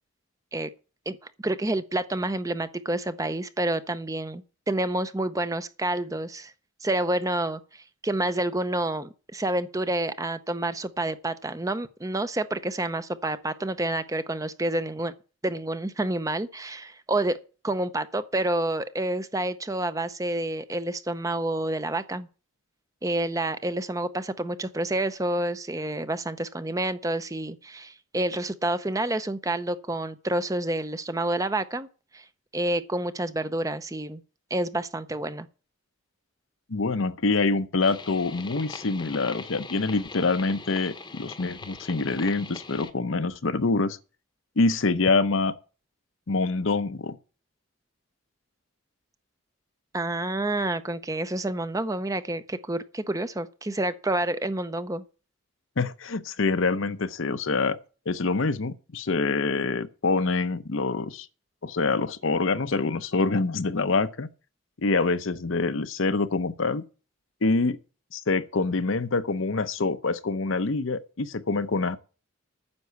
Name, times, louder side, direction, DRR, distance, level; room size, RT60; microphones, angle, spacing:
voice 1, 1.4-6.5 6.8-15.1 15.4-17.4 17.6-22.3 23.0-31.9 32.1-32.3 32.5-34.2 34.5-35.5 49.9-55.0, right 1 dB, 15° right, 0.6 m, -28 dB
voice 2, 36.7-44.0 44.6-45.5 46.3-47.2 55.8-57.8 58.1-61.3 61.6-64.3 64.8-66.8 67.4-67.8 68.1-72.0, left 3 dB, 70° left, 0.8 m, -25 dB
sound 1, 37.8-42.9, left 3 dB, 20° left, 0.9 m, -41 dB
9.7 x 6.7 x 8.2 m
head